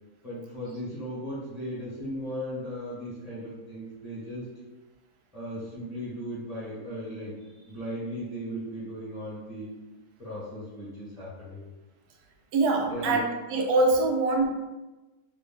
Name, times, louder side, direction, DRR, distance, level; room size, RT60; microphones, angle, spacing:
voice 1, 0.2-4.5 5.3-9.8 10.2-11.6 12.9-13.2, equal, 25° left, -10 dB, 1.2 m, -37 dB
voice 2, 12.5-14.5, right 2 dB, 75° right, 2 dB, 1.1 m, -24 dB
3.2 x 2.6 x 3.7 m, 1.1 s
omnidirectional pair, 1.7 m